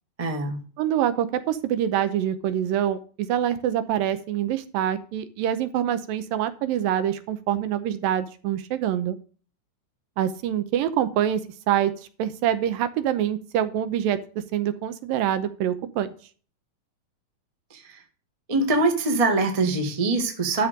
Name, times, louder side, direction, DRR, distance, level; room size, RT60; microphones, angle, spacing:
voice 1, 0.2-0.6 17.7-18.0 18.5-20.7, right 3 dB, 50° right, 4 dB, 0.4 m, -23 dB
voice 2, 0.8-9.2 10.2-11.9 12.2-14.2 14.5-16.1, right 10 dB, 80° right, 12 dB, 2.5 m, -25 dB
12.0 x 5.2 x 6.5 m, 0.40 s
omnidirectional pair, 4.2 m